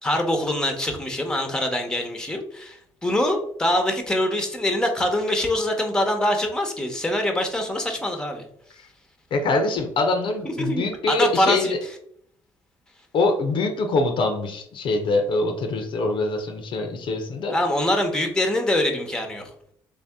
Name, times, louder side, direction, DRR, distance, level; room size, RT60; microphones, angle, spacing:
voice 1, 0.0-8.4 10.4-11.7 17.5-19.4, left 1 dB, 5° left, 4 dB, 1.0 m, -24 dB
voice 2, 9.3-11.8 13.1-17.6, left 3 dB, 60° left, 5 dB, 0.7 m, -24 dB
3.5 x 2.7 x 3.5 m, 0.66 s
supercardioid pair, 70°, 10 cm